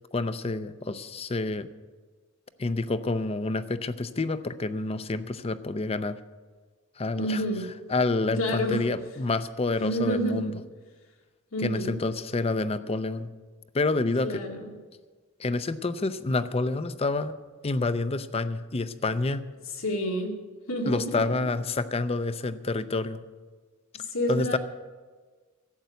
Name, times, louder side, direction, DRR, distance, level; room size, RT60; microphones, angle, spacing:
voice 1, 0.1-1.7 2.6-6.2 7.0-7.4 7.9-10.6 11.6-13.3 13.7-14.3 15.4-17.3 17.6-19.4 20.9-23.2 24.3-24.6, left 3 dB, 30° left, 13 dB, 0.6 m, -28 dB
voice 2, 7.2-7.7 8.3-8.9 9.8-10.5 11.5-12.0 14.2-14.7 19.8-20.4 20.7-21.4 23.9-24.6, equal, 85° left, 1 dB, 2.3 m, -29 dB
12.0 x 8.1 x 9.1 m, 1.4 s
head